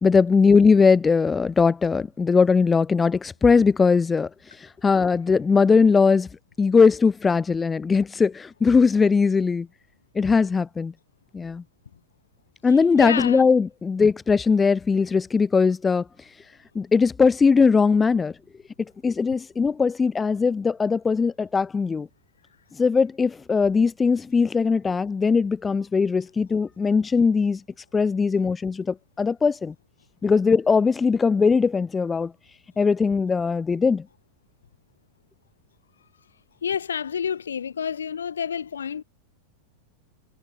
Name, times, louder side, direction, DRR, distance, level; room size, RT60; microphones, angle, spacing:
voice 1, 0.0-4.3 4.6-6.3 6.6-9.7 10.1-10.9 11.3-11.6 12.6-16.0 16.7-18.3 19.0-22.1 22.8-27.6 27.9-29.7 30.2-32.3 32.8-34.0, left 5 dB, 15° left, 1.4 m, -20 dB
voice 2, 12.7-13.5 36.6-39.0, left 7 dB, 70° left, 7.0 m, -29 dB
figure-of-eight pair, 90°, 0 cm